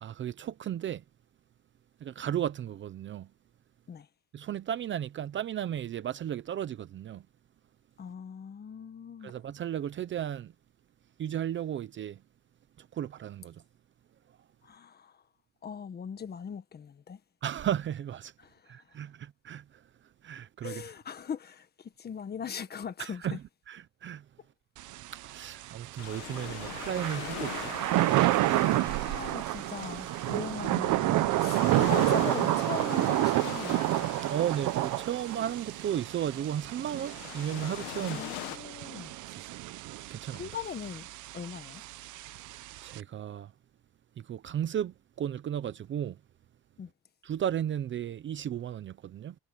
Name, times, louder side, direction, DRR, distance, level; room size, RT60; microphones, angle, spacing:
voice 1, 0.0-1.0 2.0-3.3 4.3-7.2 9.2-10.5 11.2-12.2 12.8-13.6 17.4-18.3 18.7-19.6 20.2-20.8 23.0-23.4 23.7-24.2 25.2-27.7 34.2-38.2 39.3-39.6 40.1-40.4 42.5-43.5 44.2-46.2 47.2-49.3, right 10 dB, 30° right, 0.8 m, -34 dB
voice 2, 8.0-9.4 14.6-15.2 15.6-17.2 18.4-18.8 20.6-23.4 28.7-33.8 38.1-39.2 40.3-41.1 41.3-41.8 46.8-46.9, left 7 dB, 25° left, 1.6 m, -40 dB
Thunder / Rain, 24.8-43.0, right 16 dB, 55° right, 1.1 m, -30 dB
sound 1, 26.0-38.6, left 20 dB, 80° left, 2.0 m, -42 dB
sound 2, 26.4-32.1, right 22 dB, 90° right, 2.1 m, -46 dB
cardioid pair, 140°, 37 cm